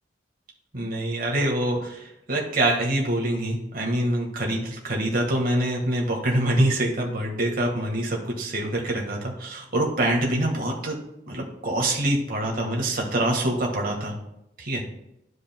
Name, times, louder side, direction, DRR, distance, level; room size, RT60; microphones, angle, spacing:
voice 1, 0.7-11.0 11.3-14.1 14.6-14.8, right 1 dB, 55° right, -1 dB, 1.6 m, -25 dB
12.5 x 4.9 x 2.2 m, 0.86 s
head